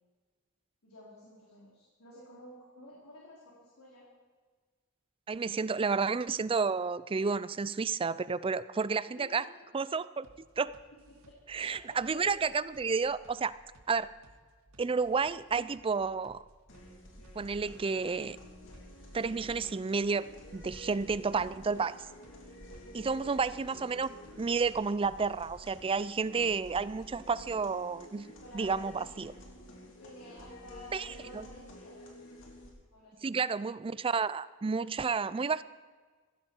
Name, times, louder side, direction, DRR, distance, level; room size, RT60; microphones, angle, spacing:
voice 1, 0.8-4.0 9.2-9.6 11.1-12.2 22.8-23.2 27.3-27.6 28.4-29.2 30.0-32.0 32.9-33.4, left 1 dB, 85° left, -5 dB, 3.4 m, -52 dB
voice 2, 5.3-9.4 9.7-10.3 10.6-10.7 11.5-13.6 13.9-14.1 14.8-16.4 17.3-18.4 19.1-20.3 20.5-22.0 22.9-28.3 28.5-29.3 30.9-31.1 31.3-31.5 33.2-35.6, right 5 dB, 25° right, 17 dB, 0.4 m, -31 dB
sound 1, 10.2-26.2, right 1 dB, 80° right, 1.9 m, -61 dB
sound 2, 16.7-32.7, equal, 65° left, 3.4 m, -50 dB
16.5 x 15.5 x 4.5 m, 1.5 s
head